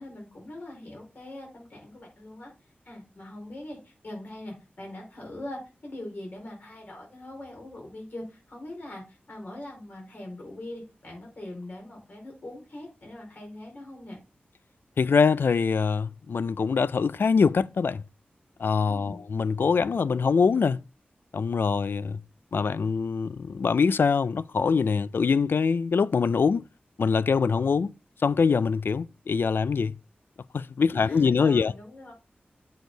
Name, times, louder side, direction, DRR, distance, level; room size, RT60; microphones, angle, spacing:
voice 1, 0.0-2.5 2.8-14.2 18.8-19.2 30.9-32.1, left 1 dB, 55° left, 4.7 m, -42 dB
voice 2, 15.0-18.0 18.6-20.8 21.3-22.2 22.5-26.6 27.0-27.9 28.2-30.0 30.5-31.7, left 5 dB, 75° left, 0.4 m, -24 dB
8.4 x 6.4 x 3.9 m
wide cardioid pair, 100°, 4 cm